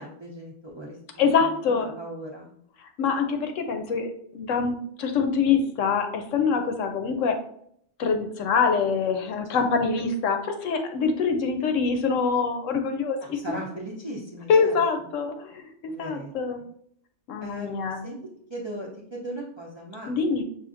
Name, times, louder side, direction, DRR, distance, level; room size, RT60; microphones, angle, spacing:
voice 1, 0.0-2.6 9.5-9.6 13.2-14.8 15.9-16.3 17.4-18.2 18.5-20.1, right 1 dB, 35° right, -3 dB, 0.5 m, -38 dB
voice 2, 1.2-1.9 3.0-7.4 8.0-13.4 14.5-16.6 17.3-18.0 20.1-20.4, left 5 dB, 80° left, 6 dB, 1.0 m, -25 dB
5.7 x 2.6 x 2.5 m, 0.67 s
omnidirectional pair, 1.3 m